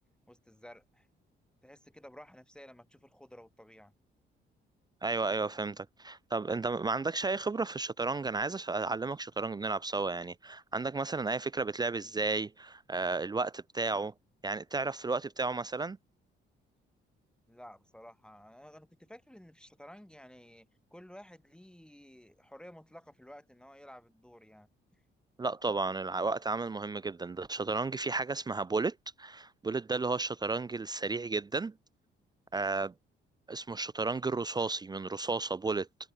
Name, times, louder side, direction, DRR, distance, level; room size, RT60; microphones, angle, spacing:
voice 1, 0.3-1.1 1.6-3.9 17.5-24.7, equal, 5° left, 2.8 m, -53 dB
voice 2, 5.0-14.1 14.4-16.0 25.4-31.7 32.5-32.9 33.5-35.9, right 3 dB, 20° right, 0.5 m, -33 dB
cardioid pair, 90°, 20 cm